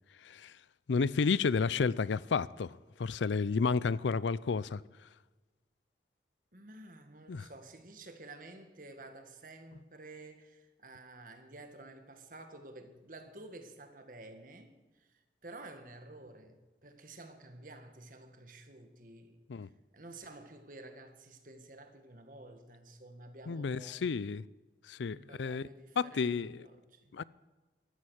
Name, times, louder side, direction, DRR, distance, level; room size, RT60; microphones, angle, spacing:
voice 1, 0.2-0.5 0.9-4.8 7.3-7.5 19.5-19.7 23.5-24.4 24.9-25.6 26.0-26.7 27.1-27.2, left 5 dB, 85° left, 0.5 m, -31 dB
voice 2, 6.5-19.7 19.9-24.0 25.1-27.2, right 2 dB, 50° right, 1.7 m, -51 dB
15.0 x 13.0 x 6.4 m
head